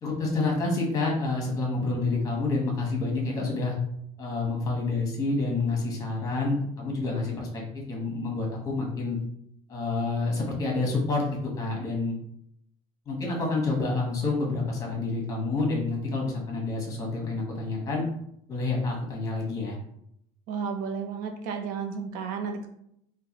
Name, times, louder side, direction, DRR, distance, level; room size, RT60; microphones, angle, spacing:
voice 1, 0.0-3.8 4.2-9.2 9.7-12.2 13.1-18.0 18.5-19.8, left 3 dB, 25° left, 0 dB, 1.0 m, -28 dB
voice 2, 20.5-22.7, right 6 dB, 70° right, 4 dB, 0.6 m, -32 dB
3.8 x 2.2 x 2.9 m, 0.73 s
cardioid pair, 155°, 14 cm